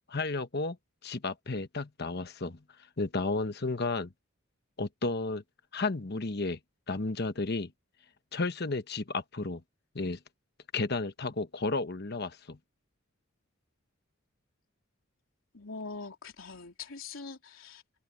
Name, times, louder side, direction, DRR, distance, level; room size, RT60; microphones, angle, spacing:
voice 1, 0.1-0.8 1.0-2.6 3.0-4.1 4.8-5.4 5.7-6.6 6.9-7.7 8.3-9.6 9.9-10.2 10.7-12.6, left 3 dB, 50° left, 1.1 m, -32 dB
voice 2, 15.5-17.8, left 4 dB, 75° left, 3.4 m, -43 dB
open air
head